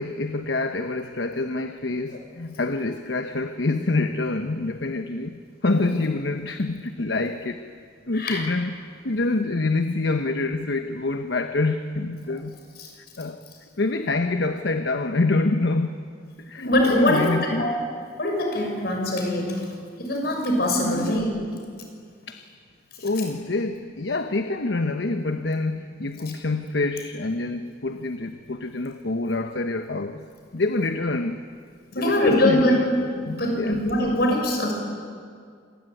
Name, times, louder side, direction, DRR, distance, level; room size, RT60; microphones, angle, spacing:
voice 1, 0.0-7.7 8.1-8.7 9.0-12.5 13.2-13.4 13.8-17.7 20.8-21.2 22.3-22.4 23.0-30.2 30.5-31.4 31.9-33.8, left 2 dB, 75° left, 8 dB, 1.0 m, -26 dB
voice 2, 16.6-17.3 17.6-17.8 18.2-19.6 20.0-21.3 23.0-23.1 31.9-32.8 33.4-34.7, left 1 dB, 55° left, 1 dB, 6.9 m, -22 dB
27.0 x 20.5 x 9.3 m, 2.1 s
head